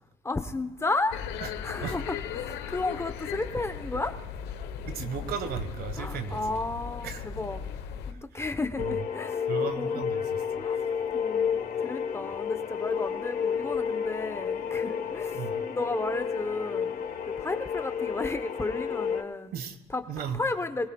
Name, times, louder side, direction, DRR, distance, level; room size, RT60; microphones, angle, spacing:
voice 1, 0.2-1.2 1.6-4.2 6.0-7.6 8.1-9.4 9.8-10.0 10.5-10.8 11.1-11.6 11.8-17.0 17.4-19.5 19.9-20.0 20.3-20.9, left 2 dB, 15° left, 9 dB, 0.9 m, -33 dB
sound 1, 1.1-8.1, left 8 dB, 85° left, 1.0 m, -37 dB
voice 2, 4.9-6.6 7.0-7.2 8.3-8.4 8.8-9.0 9.5-10.4 15.3-15.5 19.5-19.8 20.1-20.4, right 7 dB, 65° right, 9 dB, 1.4 m, -35 dB
sound 2, 8.8-19.2, left 7 dB, 60° left, 1.2 m, -31 dB
23.0 x 16.0 x 2.3 m, 1.1 s
cardioid pair, 110°, 17 cm